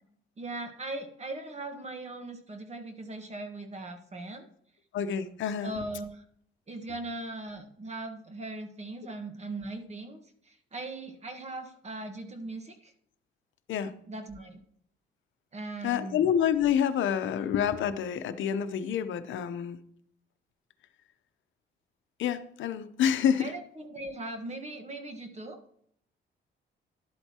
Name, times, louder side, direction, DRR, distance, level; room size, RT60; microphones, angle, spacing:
voice 1, 0.4-4.5 5.6-6.2 6.7-12.9 14.1-14.6 15.5-16.3 23.4-25.6, right 2 dB, 35° right, 6 dB, 1.4 m, -39 dB
voice 2, 4.9-5.7 13.7-13.9 15.8-19.8 22.2-23.5, left 8 dB, 75° left, 10 dB, 0.8 m, -28 dB
11.5 x 7.9 x 2.9 m, 0.65 s
cardioid pair, 90°, 20 cm